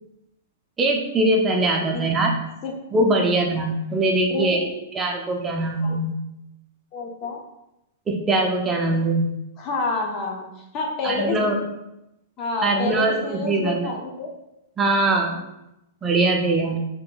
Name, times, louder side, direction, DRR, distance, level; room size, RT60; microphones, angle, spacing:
voice 1, 0.8-2.3 2.9-6.2 8.1-9.3 11.0-11.6 12.6-13.9 14.8-15.4 16.0-16.8, right 2 dB, 15° right, 1 dB, 0.5 m, -22 dB
voice 2, 1.8-2.2 2.6-2.7 3.1-3.4 4.3-4.5 5.8-5.9 6.9-7.4 9.6-10.5 10.7-11.6 12.4-14.3, left 3 dB, 30° left, 0 dB, 0.7 m, -28 dB
2.9 x 2.6 x 3.7 m, 0.89 s
hypercardioid pair, 150°, 0 cm